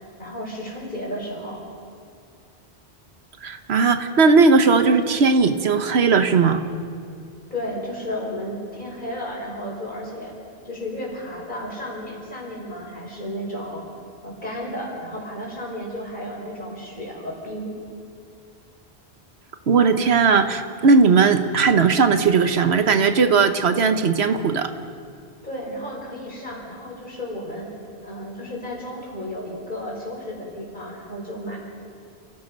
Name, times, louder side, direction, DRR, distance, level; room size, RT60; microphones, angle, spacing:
voice 1, 0.2-1.6 7.5-10.3 10.6-13.8 14.2-17.7 25.4-27.7 28.0-31.6, equal, 45° left, -3 dB, 5.5 m, -33 dB
voice 2, 3.4-6.6 19.7-24.7, right 4 dB, 75° right, 9 dB, 1.2 m, -17 dB
29.5 x 16.5 x 5.3 m, 2.3 s
omnidirectional pair, 1.1 m